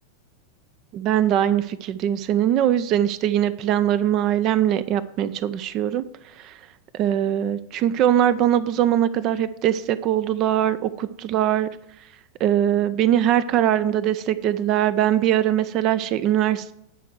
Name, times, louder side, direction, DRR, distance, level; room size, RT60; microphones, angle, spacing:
voice 1, 0.9-6.0 6.4-6.5 6.9-11.7 12.4-16.7, right 11 dB, 35° right, 14 dB, 0.4 m, -21 dB
8.9 x 4.5 x 6.4 m, 0.82 s
figure-of-eight pair, 90°, 0 cm